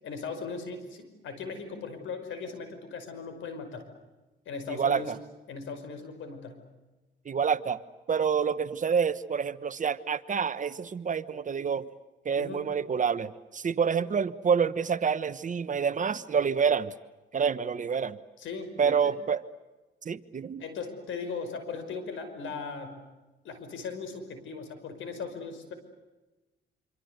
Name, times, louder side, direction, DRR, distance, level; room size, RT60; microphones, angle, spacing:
voice 1, 0.0-3.9 4.5-5.1 5.5-6.6 12.4-12.6 18.4-19.2 20.6-23.0 23.4-25.7, left 5 dB, 75° left, 9 dB, 5.4 m, -38 dB
voice 2, 4.7-5.2 7.2-7.8 8.1-11.9 12.2-16.9 17.3-18.2 18.8-19.4 20.0-20.6, right 6 dB, 40° right, 13 dB, 1.2 m, -27 dB
26.0 x 25.5 x 8.1 m, 1.1 s
cardioid pair, 90°, 20 cm